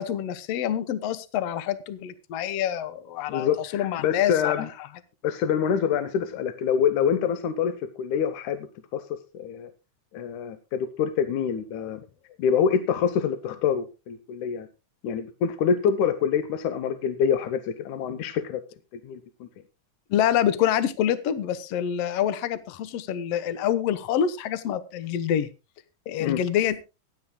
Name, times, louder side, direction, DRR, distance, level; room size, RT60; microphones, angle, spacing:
voice 1, 0.0-4.7 20.1-25.5 26.1-26.8, left 10 dB, 65° left, 13 dB, 1.9 m, -26 dB
voice 2, 3.3-4.7 5.2-9.0 9.3-9.7 10.1-12.0 12.4-14.7 15.0-18.6 18.9-19.5 26.2-26.4, left 7 dB, 80° left, 10 dB, 2.4 m, -26 dB
24.0 x 9.5 x 2.3 m, 0.28 s
omnidirectional pair, 3.5 m